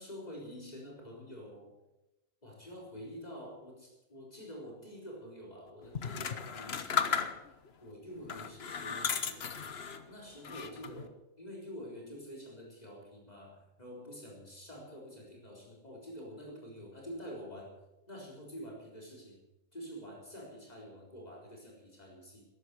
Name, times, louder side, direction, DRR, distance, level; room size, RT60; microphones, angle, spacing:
voice 1, 0.0-1.7 2.4-7.5 7.8-9.6 10.1-17.7 18.1-19.4 19.7-22.5, equal, 30° left, -2 dB, 4.2 m, -47 dB
sound 1, 5.9-7.7 8.2-10.0 10.4-11.1, left 6 dB, 50° left, 1.2 m, -35 dB
13.5 x 11.5 x 8.0 m, 0.96 s
omnidirectional pair, 1.5 m